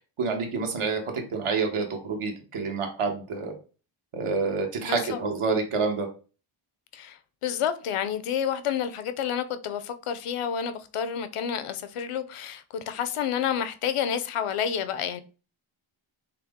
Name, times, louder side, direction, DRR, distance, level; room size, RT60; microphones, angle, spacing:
voice 1, 0.2-1.0 1.3-3.5 4.1-6.1, right 4 dB, 80° right, 1.1 m, -28 dB
voice 2, 4.8-5.2 6.9-15.2, left 8 dB, 80° left, 0.6 m, -29 dB
5.7 x 2.0 x 3.5 m
wide cardioid pair, 145°, 50 cm